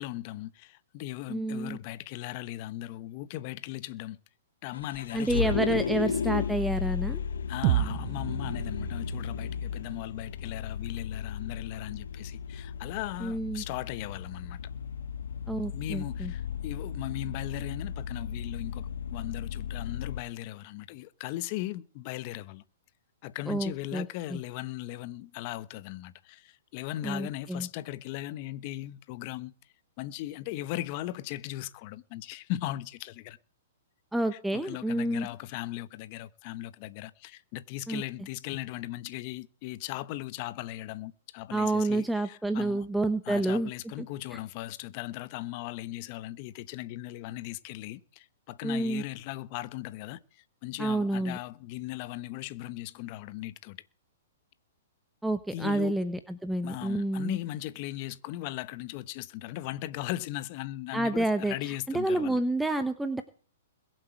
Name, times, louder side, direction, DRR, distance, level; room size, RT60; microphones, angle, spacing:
voice 1, 0.0-4.2 4.6-5.9 7.5-14.6 15.7-22.6 23.2-29.5 30.0-33.4 34.3-42.8 43.3-50.2 50.6-53.8 55.5-55.9 56.6-62.4, left 15 dB, 45° left, 1.0 m, -38 dB
voice 2, 1.3-1.8 5.1-7.2 13.2-13.6 15.5-16.3 23.5-24.4 27.0-27.7 34.1-35.3 37.9-38.0 41.5-43.7 44.0-44.1 44.3-44.4 48.6-49.0 50.8-51.4 55.2-57.4 60.9-63.2, right 1 dB, 5° right, 1.0 m, -29 dB
Vehicle, 4.7-20.2, left 7 dB, 80° left, 1.2 m, -35 dB
sound 1, 7.6-11.6, right 14 dB, 45° right, 0.8 m, -33 dB
22.0 x 7.7 x 4.5 m
hypercardioid pair, 130°, 0 cm